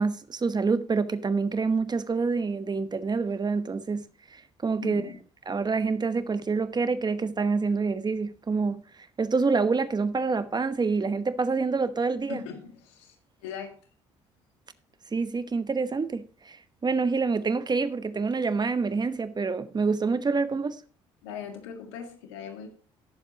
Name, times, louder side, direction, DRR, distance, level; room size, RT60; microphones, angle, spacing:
voice 1, 0.0-4.1 4.6-5.0 5.5-8.8 9.2-12.4 15.1-16.6 16.8-20.8, right 4 dB, 30° right, 1.0 m, -27 dB
voice 2, 4.8-5.2 12.3-13.2 13.4-13.8 21.2-22.7, left 7 dB, 90° left, 1.8 m, -39 dB
18.0 x 7.2 x 2.9 m
hypercardioid pair, 60°, 14 cm